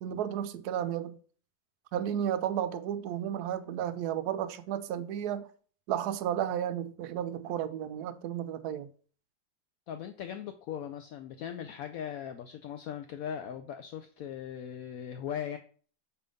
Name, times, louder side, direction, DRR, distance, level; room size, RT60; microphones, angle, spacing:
voice 1, 0.0-1.2 1.9-5.5 5.9-8.9, right 10 dB, 70° right, 1.0 m, -33 dB
voice 2, 9.9-15.6, left 9 dB, 75° left, 0.8 m, -39 dB
6.7 x 3.5 x 5.1 m
omnidirectional pair, 2.0 m